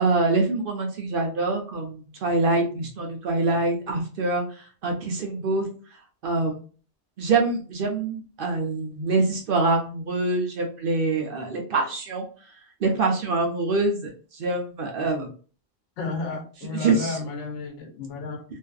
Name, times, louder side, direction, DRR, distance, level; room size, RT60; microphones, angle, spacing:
voice 1, 0.0-5.7 6.2-6.6 7.2-12.2 12.8-15.3 16.7-17.2, right 3 dB, 60° right, 0.6 m, -25 dB
voice 2, 16.0-18.4, left 3 dB, 85° left, 0.9 m, -32 dB
2.5 x 2.3 x 2.3 m
omnidirectional pair, 1.2 m